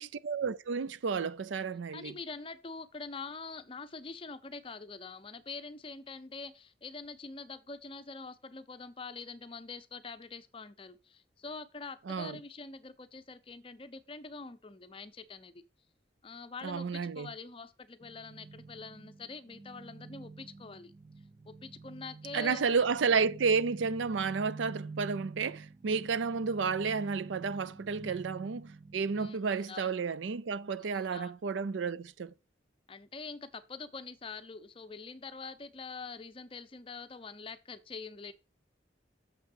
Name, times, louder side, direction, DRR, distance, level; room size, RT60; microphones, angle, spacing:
voice 1, 0.0-2.2 12.1-12.4 16.6-17.3 22.3-32.3, right 5 dB, 85° right, 0.5 m, -31 dB
voice 2, 1.9-15.6 16.2-20.9 21.5-23.0 28.0-28.2 29.1-29.9 30.8-31.3 32.9-38.3, left 4 dB, 30° left, 0.6 m, -45 dB
sound 1, 18.0-29.3, right 3 dB, 25° right, 0.3 m, -48 dB
6.8 x 5.7 x 5.4 m
head